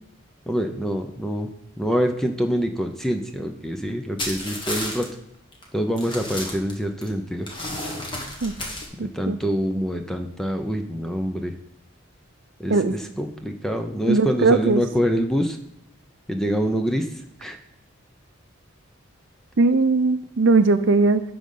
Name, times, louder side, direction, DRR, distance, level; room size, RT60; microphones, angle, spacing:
voice 1, 0.5-1.5 1.8-5.1 5.7-7.5 9.0-11.5 12.6-15.6 16.3-17.1 17.4-17.6, equal, ahead, 5 dB, 0.6 m, -25 dB
sound 1, 4.2-5.0 5.5-5.6 6.0-7.1 7.5-8.8, left 1 dB, 25° left, 1.6 m, -31 dB
voice 2, 9.0-9.4 12.7-13.0 14.1-14.8 19.6-21.2, right 3 dB, 60° right, 10 dB, 0.6 m, -19 dB
11.5 x 3.9 x 5.5 m, 0.81 s
head